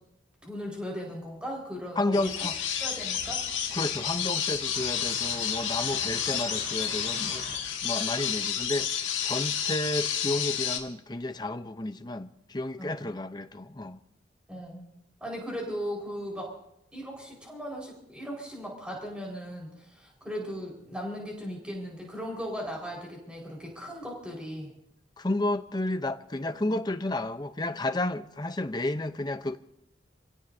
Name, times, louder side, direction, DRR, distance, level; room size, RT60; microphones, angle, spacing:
voice 1, 0.4-2.4 2.8-3.4 12.8-13.1 14.5-14.8 15.2-16.5 16.9-24.7 26.7-26.8, equal, 5° right, 4.6 m, -37 dB
voice 2, 2.0-2.6 3.7-7.4 7.8-14.0 25.2-29.6, left 2 dB, 20° left, 0.7 m, -31 dB
sound 1, 2.1-10.8, left 8 dB, 85° left, 2.1 m, -30 dB
sound 2, 4.7-7.6, right 2 dB, 60° right, 3.1 m, -43 dB
28.5 x 17.0 x 2.7 m
head